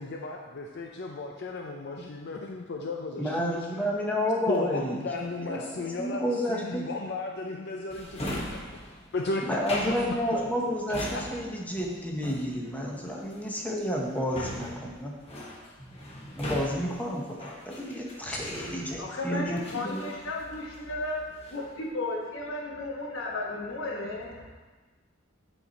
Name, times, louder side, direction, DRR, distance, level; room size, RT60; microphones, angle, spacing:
voice 1, 0.0-3.6 4.5-8.6 9.1-10.5 11.1-11.2, left 3 dB, 60° left, 1 dB, 0.5 m, -34 dB
voice 2, 3.2-5.0 5.4-6.8 9.4-15.1 16.4-20.0, equal, 10° left, -1 dB, 0.9 m, -31 dB
Drawer open or close, 7.9-19.2 19.6-20.9 21.2-21.8, left 1 dB, 30° left, 1.2 m, -40 dB
voice 3, 18.2-24.5, left 2 dB, 80° left, -2 dB, 1.4 m, -35 dB
8.1 x 4.4 x 4.1 m, 1.3 s
head